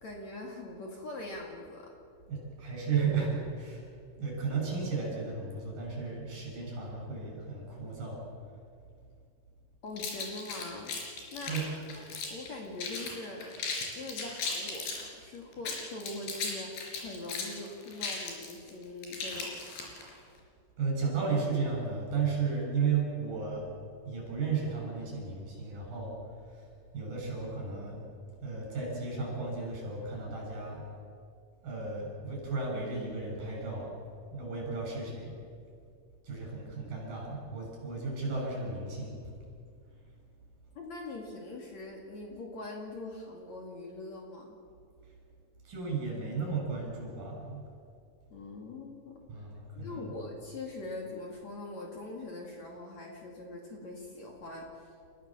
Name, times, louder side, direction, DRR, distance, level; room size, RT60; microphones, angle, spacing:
voice 1, 0.0-1.9 9.8-10.9 11.3-11.8 12.3-13.6 13.9-19.6 40.7-44.6 48.3-49.2 49.7-54.9, left 2 dB, 50° left, 0 dB, 3.2 m, -42 dB
voice 2, 2.3-3.8 4.2-8.2 11.4-11.7 20.8-23.7 24.1-26.7 26.9-28.0 28.4-30.8 31.6-33.9 34.3-35.3 36.2-39.4 45.6-47.7 49.3-50.1, right 4 dB, 60° right, -1 dB, 8.0 m, -34 dB
sound 1, 10.0-12.5 12.8-13.1 13.4-15.0 15.5-20.1, left 4 dB, 80° left, 5.7 m, -36 dB
29.5 x 15.0 x 7.3 m, 2.3 s
omnidirectional pair, 4.7 m